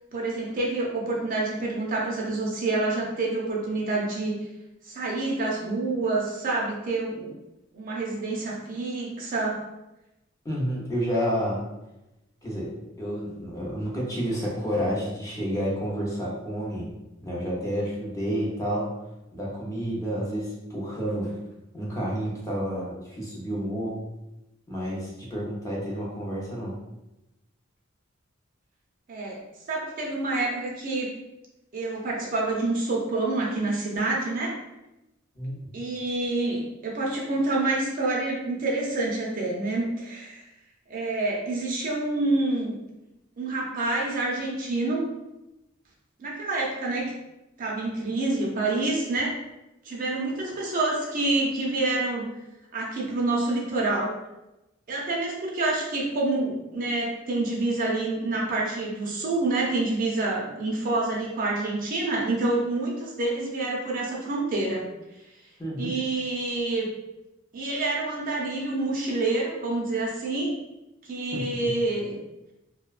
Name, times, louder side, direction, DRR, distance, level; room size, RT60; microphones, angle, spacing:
voice 1, 0.1-4.4 4.8-7.3 7.7-9.6 29.1-31.1 31.7-34.6 35.7-40.4 40.9-42.8 43.4-45.1 46.2-47.1 47.6-49.4 49.8-52.3 52.7-54.1 54.9-64.9 65.8-66.9 67.5-70.5 71.0-72.2, right 2 dB, 45° right, -3 dB, 0.5 m, -27 dB
voice 2, 10.4-11.6 12.4-12.7 13.0-16.9 17.2-18.9 19.3-21.3 21.7-24.1 24.7-26.7 35.3-35.5 65.6-65.9 71.3-71.5, equal, 15° left, -5 dB, 0.6 m, -30 dB
2.7 x 2.1 x 2.4 m, 0.95 s
head